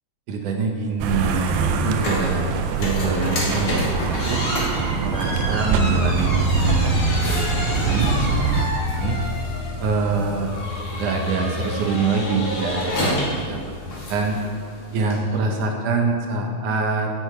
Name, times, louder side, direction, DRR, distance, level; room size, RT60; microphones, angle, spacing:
voice 1, 0.3-1.4 1.8-4.0 4.3-4.4 5.0-9.2 9.8-10.5 10.9-13.8 14.1-14.4 14.9-17.1, right 4 dB, 65° right, 2 dB, 2.3 m, -25 dB
sound 1, 1.0-8.7, right 5 dB, 85° right, 2.5 m, -23 dB
sound 2, 1.9-15.2, left 1 dB, 40° left, 2.9 m, -30 dB
sound 3, 6.4-15.5, left 3 dB, 85° left, 1.7 m, -33 dB
16.0 x 7.0 x 5.0 m, 2.2 s
omnidirectional pair, 4.1 m